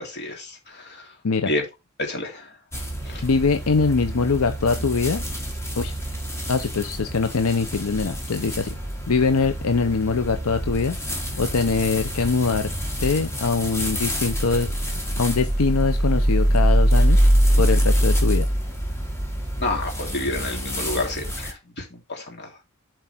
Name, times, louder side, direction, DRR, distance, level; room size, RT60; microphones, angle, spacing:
voice 1, 0.0-1.1 1.5-1.6 2.0-2.5 3.0-3.2 19.6-22.6, left 2 dB, 55° left, 2.9 m, -30 dB
sound 1, 2.7-21.5, equal, 15° left, 1.9 m, -24 dB
voice 2, 3.2-5.2 5.8-5.9 6.5-8.7 9.1-11.0 11.4-12.7 13.0-14.7 15.2-17.2 17.6-18.5, left 4 dB, 85° left, 0.7 m, -23 dB
7.6 x 4.7 x 4.4 m
head